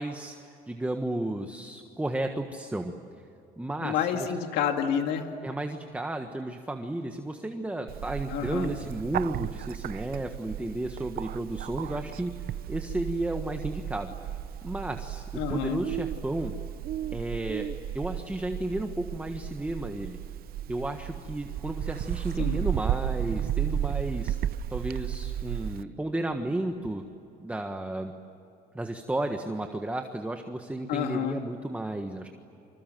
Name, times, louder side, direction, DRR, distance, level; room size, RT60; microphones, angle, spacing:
voice 1, 0.0-2.9 3.6-4.3 5.4-12.3 12.7-14.3 14.6-16.5 17.1-17.7 17.9-20.2 20.7-24.4 24.7-27.0 27.4-28.1 28.7-32.3, right 1 dB, 10° right, 5 dB, 1.4 m, -33 dB
voice 2, 3.8-5.3 8.3-8.8 15.4-15.8 22.4-22.6 30.9-31.4, left 8 dB, 90° left, 5 dB, 2.1 m, -29 dB
Bird, 7.9-25.8, right 11 dB, 60° right, 0.7 m, -34 dB
29.0 x 26.0 x 7.7 m, 2.9 s
cardioid pair, 110°, 17 cm